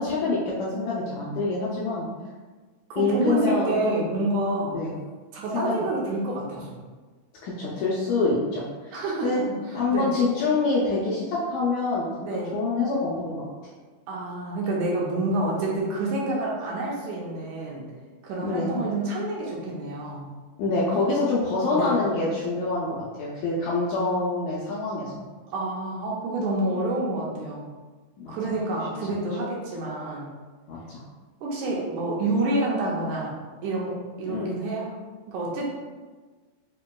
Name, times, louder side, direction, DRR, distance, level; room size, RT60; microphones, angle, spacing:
voice 1, 0.0-2.1 3.0-3.8 4.7-4.9 5.5-5.7 7.4-9.0 9.2-9.4 9.7-12.1 12.5-13.5 18.4-18.7 20.6-25.1 28.2-28.6 29.0-29.2 30.7-31.0 34.3-34.6, left 3 dB, 80° left, -5 dB, 1.7 m, -26 dB
voice 2, 2.9-4.8 5.3-6.8 8.9-9.3 9.7-10.1 12.2-12.5 14.1-17.8 18.2-20.3 21.7-22.0 25.5-27.7 28.3-30.3 31.4-33.3 33.6-34.9 35.3-35.7, right 2 dB, 80° right, -4 dB, 2.0 m, -28 dB
5.2 x 2.8 x 2.2 m, 1.3 s
omnidirectional pair, 3.7 m